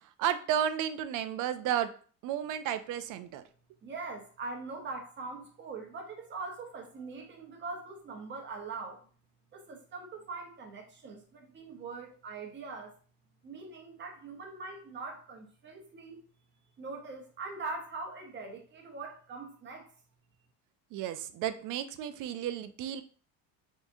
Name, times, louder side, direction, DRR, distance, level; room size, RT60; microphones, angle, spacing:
voice 1, 0.2-1.9 2.2-3.4 20.9-23.0, right 10 dB, 50° right, 11 dB, 0.5 m, -32 dB
voice 2, 3.8-9.0 9.5-12.9 13.4-16.2 16.8-19.9, right 3 dB, 25° right, 2 dB, 0.9 m, -42 dB
4.8 x 3.7 x 2.6 m, 0.41 s
cardioid pair, 160°, 41 cm